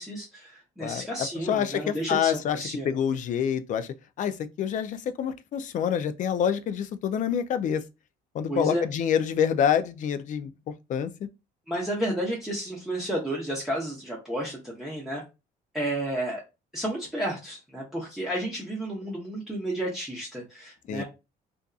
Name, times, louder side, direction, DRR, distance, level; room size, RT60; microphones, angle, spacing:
voice 1, 0.0-3.0 8.5-8.8 11.7-15.2 15.7-16.4 16.7-21.0, right 1 dB, ahead, 0.7 m, -32 dB
voice 2, 1.5-3.9 4.2-7.8 8.3-10.5 10.9-11.1 20.9-21.0, left 8 dB, 50° left, 0.4 m, -27 dB
2.6 x 2.4 x 2.3 m
cardioid pair, 110°, 17 cm